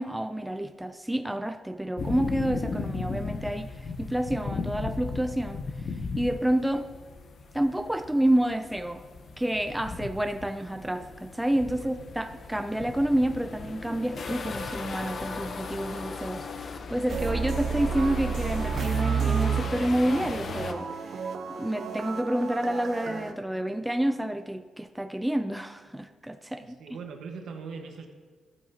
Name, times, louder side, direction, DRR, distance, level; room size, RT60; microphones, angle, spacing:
voice 1, 0.0-5.6 6.2-6.9 7.5-9.1 9.4-16.5 16.9-21.3 21.6-26.8, right 1 dB, 5° right, 8 dB, 0.4 m, -29 dB
sound 1, 2.0-20.7, left 4 dB, 45° left, 0.7 m, -37 dB
sound 2, 17.1-23.3, right 6 dB, 55° right, 0.7 m, -31 dB
voice 2, 26.6-28.1, right 5 dB, 70° right, 4 dB, 1.3 m, -40 dB
14.5 x 8.7 x 2.8 m, 1.5 s
cardioid pair, 110°, 0 cm